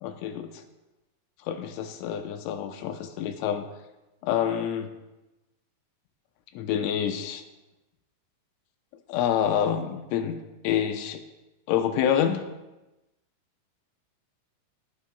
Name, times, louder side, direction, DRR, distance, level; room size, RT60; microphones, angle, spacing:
voice 1, 0.0-0.5 1.5-3.7 4.2-4.9 6.6-7.4 9.1-10.4 10.6-11.2 11.7-12.5, left 9 dB, 80° left, 6 dB, 3.2 m, -27 dB
17.5 x 16.0 x 2.2 m, 1.0 s
omnidirectional pair, 5.7 m